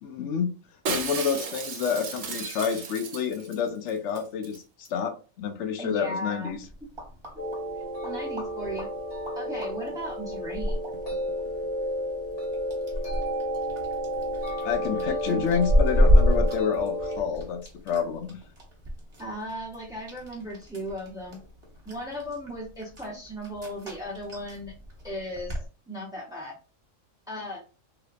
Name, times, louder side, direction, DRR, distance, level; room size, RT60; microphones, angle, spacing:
voice 1, 0.0-0.5 0.9-6.6 14.6-18.4, left 7 dB, 70° left, 9 dB, 0.8 m, -29 dB
Shatter, 0.9-3.6 3.9-4.6 4.8-4.9, right 5 dB, 90° right, 1.1 m, -34 dB
voice 2, 5.8-6.5 7.8-8.9 9.4-10.8 15.3-15.4 19.2-21.4 21.9-24.7 25.0-25.6 25.9-26.5 27.3-27.6, equal, 5° right, -4 dB, 0.3 m, -36 dB
sound 1, 6.5-25.7, equal, 25° right, 0.9 m, -30 dB
sound 2, 7.4-17.2, equal, 50° left, 1.4 m, -32 dB
3.3 x 2.8 x 2.4 m, 0.36 s
omnidirectional pair, 1.3 m